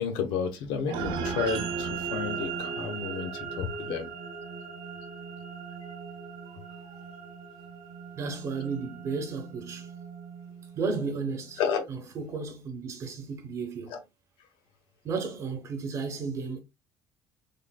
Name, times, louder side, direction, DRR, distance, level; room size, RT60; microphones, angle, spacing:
voice 1, 0.0-4.1 11.6-11.9 13.9-14.0, left 6 dB, 75° left, 0.9 m, -31 dB
sound 1, 0.9-11.5, right 6 dB, 65° right, 0.7 m, -37 dB
voice 2, 8.2-9.9 10.7-11.6 11.9-14.0 15.0-16.6, right 4 dB, 35° right, 1.0 m, -33 dB
3.9 x 3.4 x 2.2 m
cardioid pair, 160°, 9 cm